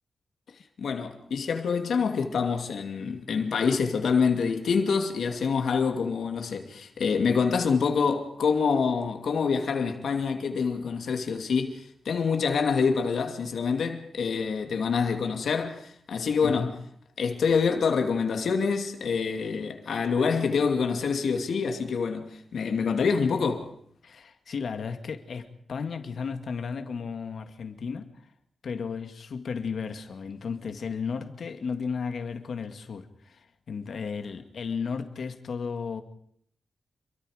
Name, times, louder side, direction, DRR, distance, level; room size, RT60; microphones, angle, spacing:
voice 1, 0.8-16.7 17.2-23.7, left 5 dB, 85° left, 2.4 m, -26 dB
voice 2, 16.4-16.7 24.0-28.3 28.6-36.0, left 5 dB, 70° left, 2.0 m, -34 dB
27.0 x 23.5 x 5.1 m
wide cardioid pair, 140°, 0 cm